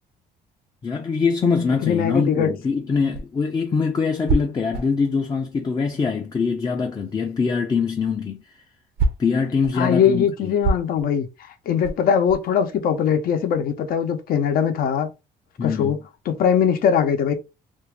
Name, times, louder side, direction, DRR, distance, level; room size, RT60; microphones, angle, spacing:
voice 1, 0.8-8.4 9.2-10.5 15.6-15.9, left 5 dB, 25° left, 0.5 m, -23 dB
voice 2, 1.8-2.5 9.8-15.1 15.6-16.0 16.3-17.3, left 8 dB, 60° left, 0.7 m, -21 dB
sound 1, 2.8-6.5 6.8-12.6, right 3 dB, 70° right, 0.7 m, -28 dB
2.6 x 2.4 x 3.3 m
cardioid pair, 110°, 17 cm